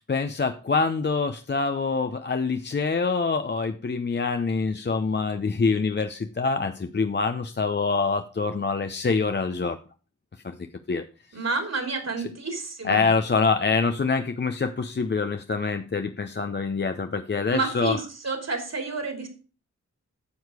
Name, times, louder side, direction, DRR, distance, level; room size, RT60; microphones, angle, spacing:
voice 1, 0.1-9.8 10.4-10.5 10.9-11.1 12.8-18.0, left 4 dB, 35° left, 8 dB, 0.7 m, -25 dB
voice 2, 11.3-13.1 17.5-19.3, right 3 dB, 55° right, 4 dB, 3.1 m, -30 dB
9.6 x 6.3 x 4.9 m, 0.37 s
cardioid pair, 45°, 31 cm